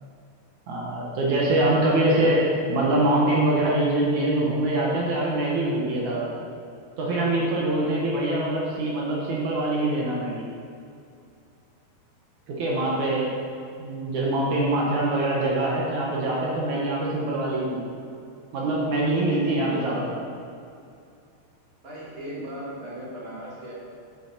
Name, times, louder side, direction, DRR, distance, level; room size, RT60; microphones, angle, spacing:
voice 1, 0.7-6.4 7.0-10.5 12.5-13.3 13.8-17.8 18.5-20.2, right 1 dB, 60° right, -4 dB, 2.1 m, -24 dB
voice 2, 21.8-23.7, equal, 30° right, -6 dB, 2.0 m, -37 dB
11.0 x 8.2 x 4.4 m, 2.4 s
omnidirectional pair, 5.1 m